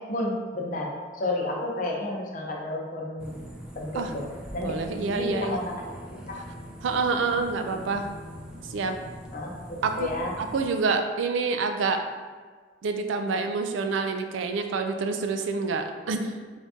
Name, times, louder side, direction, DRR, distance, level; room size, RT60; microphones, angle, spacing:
voice 1, 0.0-3.4 3.7-4.3 4.5-5.7 6.3-6.4 9.3-10.3, left 1 dB, 45° left, -2 dB, 0.7 m, -31 dB
sound 1, 3.2-10.7, equal, 5° right, 0.4 m, -42 dB
voice 2, 4.6-5.6 6.8-8.1 8.7-9.0 9.8-10.1 10.4-12.0 12.8-16.3, right 4 dB, 85° right, 6 dB, 0.4 m, -27 dB
3.8 x 2.6 x 3.5 m, 1.5 s
head